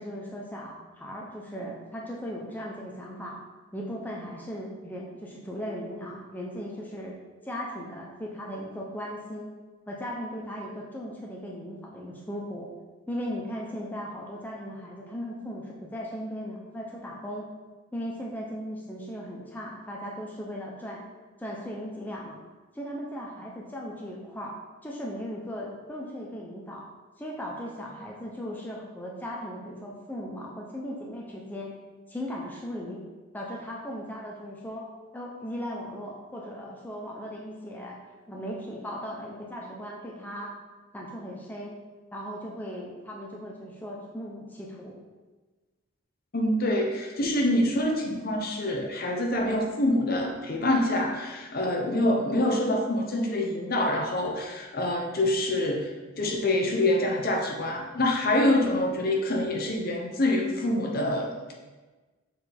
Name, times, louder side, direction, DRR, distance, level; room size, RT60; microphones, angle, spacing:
voice 1, 0.0-3.4 3.7-7.2 7.4-9.5 9.9-12.7 13.1-17.5 17.9-21.0 21.4-22.4 22.7-24.5 24.8-26.8 27.2-31.7 32.1-33.0 33.3-34.9 35.1-38.0 38.3-40.5 40.9-41.7 42.1-45.0, equal, 10° left, -3 dB, 0.6 m, -37 dB
voice 2, 46.3-55.9 56.2-61.5, left 1 dB, 45° left, 1 dB, 0.7 m, -26 dB
6.6 x 4.1 x 3.4 m, 1.3 s
head